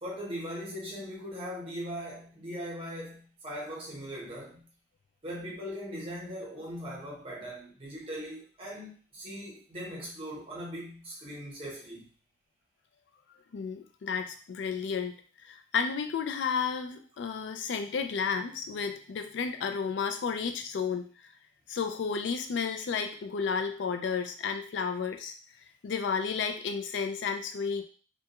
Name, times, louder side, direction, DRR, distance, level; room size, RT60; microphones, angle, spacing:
voice 1, 0.0-4.7 5.2-12.1, equal, 30° right, -3 dB, 0.8 m, -40 dB
voice 2, 13.5-21.1 21.7-25.3 25.8-27.8, left 6 dB, 90° left, 6 dB, 0.3 m, -32 dB
2.2 x 2.2 x 2.9 m, 0.40 s
head